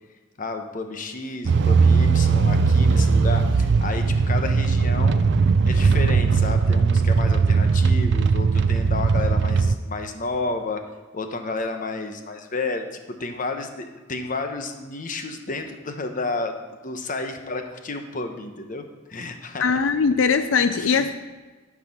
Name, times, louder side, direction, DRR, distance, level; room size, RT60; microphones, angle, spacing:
voice 1, 0.4-5.2 5.7-10.8 11.1-19.8 20.6-21.0, left 3 dB, 45° left, 6 dB, 0.9 m, -31 dB
sound 1, 1.5-9.7, right 4 dB, 65° right, 0.4 m, -19 dB
voice 2, 19.6-21.1, left 5 dB, 85° left, 10 dB, 0.5 m, -20 dB
12.0 x 4.7 x 5.9 m, 1.3 s
head